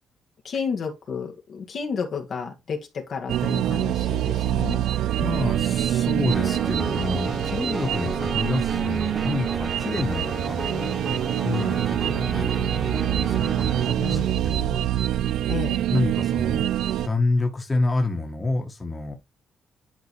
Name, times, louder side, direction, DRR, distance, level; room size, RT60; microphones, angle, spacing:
voice 1, 0.4-4.8 14.0-14.4 15.5-15.9, left 5 dB, 55° left, 1.8 m, -31 dB
sound 1, 3.3-17.1, right 12 dB, 80° right, 0.3 m, -25 dB
sound 2, 5.1-14.7, right 4 dB, 35° right, 0.9 m, -42 dB
voice 2, 5.2-14.8 15.9-16.7 17.0-19.1, left 2 dB, 25° left, 1.6 m, -28 dB
Piano, 6.3-13.9, right 1 dB, 15° right, 1.1 m, -34 dB
10.5 x 4.0 x 3.2 m
cardioid pair, 90°, 0 cm